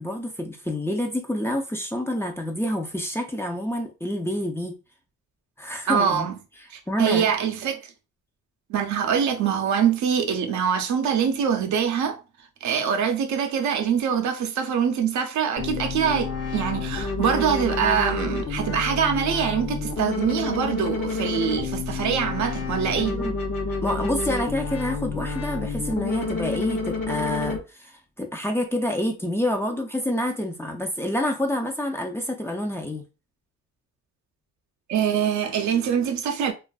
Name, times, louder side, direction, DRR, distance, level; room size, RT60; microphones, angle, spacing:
voice 1, 0.0-4.8 5.6-6.3 6.9-7.3 23.1-23.4 23.8-33.0, left 1 dB, 10° left, 0.4 m, -28 dB
voice 2, 5.9-6.4 6.7-7.8 8.7-12.2 12.6-23.2 34.9-36.5, right 7 dB, 70° right, 0.6 m, -24 dB
sound 1, 15.6-27.6, left 4 dB, 50° left, 0.8 m, -29 dB
2.5 x 2.3 x 2.2 m
cardioid pair, 90°, 30 cm